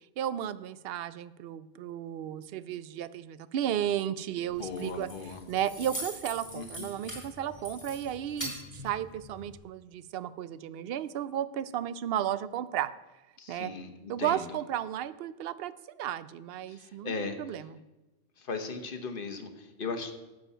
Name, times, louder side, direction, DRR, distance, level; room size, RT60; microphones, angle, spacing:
voice 1, 0.2-5.1 5.5-8.5 8.8-12.9 13.5-13.7 14.1-15.7 16.0-17.6, right 10 dB, 65° right, 16 dB, 0.8 m, -33 dB
Keys jangling, 4.5-9.6, equal, 30° left, 3.4 m, -42 dB
voice 2, 4.6-5.4 6.5-6.9 13.4-14.6 16.7-17.7 18.4-20.1, left 4 dB, 55° left, 6 dB, 1.3 m, -38 dB
12.0 x 8.1 x 5.5 m, 1.1 s
omnidirectional pair, 1.1 m